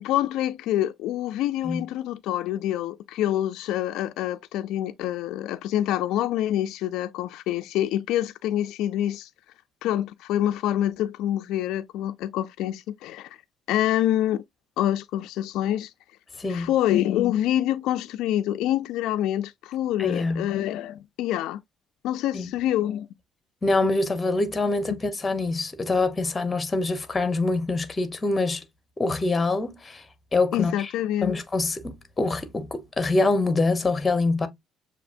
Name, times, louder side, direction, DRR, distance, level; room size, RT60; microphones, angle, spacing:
voice 1, 0.0-9.3 9.8-13.3 13.7-14.4 14.8-15.9 16.5-21.6 22.0-23.1 24.9-25.0 30.5-31.3, left 12 dB, 85° left, 0.3 m, -26 dB
voice 2, 16.4-16.7 20.0-20.5 22.3-22.5 23.6-28.6 29.0-30.0 30.3-30.9 31.2-34.5, left 3 dB, 20° left, 0.9 m, -25 dB
6.9 x 2.8 x 2.5 m
cardioid pair, 120°, 0 cm